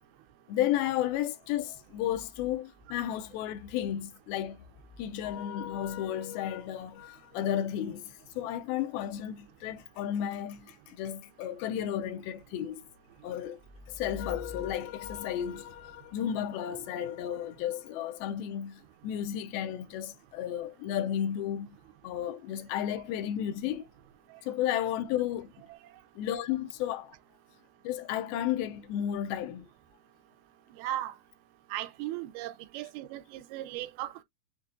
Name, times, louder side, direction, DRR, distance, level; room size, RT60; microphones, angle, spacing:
voice 1, 0.5-4.6 5.0-12.8 13.2-13.6 13.9-21.7 22.0-23.9 24.4-25.5 26.2-27.2 27.8-29.7, left 11 dB, 80° left, 2.4 m, -33 dB
voice 2, 30.7-31.1 31.7-34.2, right 14 dB, 85° right, 2.5 m, -37 dB
6.6 x 2.3 x 2.5 m
omnidirectional pair, 4.4 m